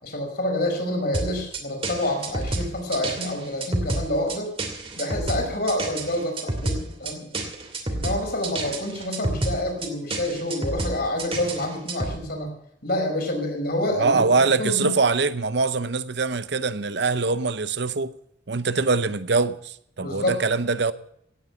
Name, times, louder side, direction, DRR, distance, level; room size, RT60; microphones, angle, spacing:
voice 1, 0.0-4.5 4.9-7.4 7.9-12.5 12.8-14.9 20.0-20.3, left 1 dB, 55° left, 5.2 m, -28 dB
sound 1, 1.1-12.2, right 2 dB, 30° right, 2.6 m, -29 dB
voice 2, 14.0-18.2 18.5-20.9, right 4 dB, 60° right, 0.8 m, -23 dB
17.0 x 9.6 x 7.0 m
head